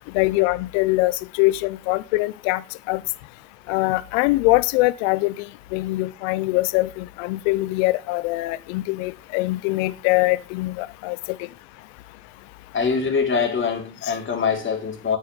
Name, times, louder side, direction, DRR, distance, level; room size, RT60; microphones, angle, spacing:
voice 1, 0.1-2.6 2.9-3.0 3.7-5.5 5.7-11.4, left 20 dB, 65° left, 0.9 m, -22 dB
voice 2, 12.7-15.2, left 5 dB, 30° left, 4.5 m, -23 dB
9.3 x 8.7 x 8.1 m
hypercardioid pair, 80°, 39 cm